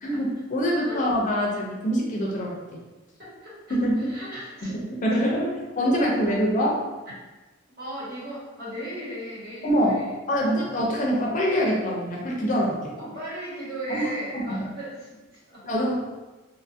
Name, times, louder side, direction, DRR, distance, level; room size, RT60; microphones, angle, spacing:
voice 1, 0.0-2.6 3.7-4.1 4.6-6.8 9.6-10.0 10.3-12.9 13.9-14.7 15.6-16.0, equal, 40° left, -2 dB, 0.4 m, -25 dB
voice 2, 3.2-4.7 5.8-6.1 7.0-7.1 7.8-10.7 13.0-15.6, right 1 dB, 50° right, -8 dB, 1.2 m, -37 dB
2.7 x 2.4 x 2.6 m, 1.2 s
head